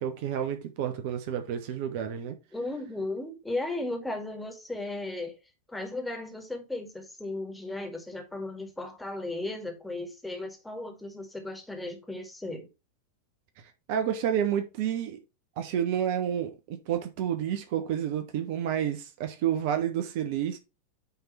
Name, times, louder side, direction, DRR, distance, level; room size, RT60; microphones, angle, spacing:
voice 1, 0.0-2.4 13.9-15.2 15.6-20.6, right 9 dB, 50° right, 0.9 m, -30 dB
voice 2, 2.5-5.4 5.7-12.7, left 2 dB, 5° left, 2.0 m, -35 dB
9.2 x 3.5 x 4.2 m
figure-of-eight pair, 90°, 0 cm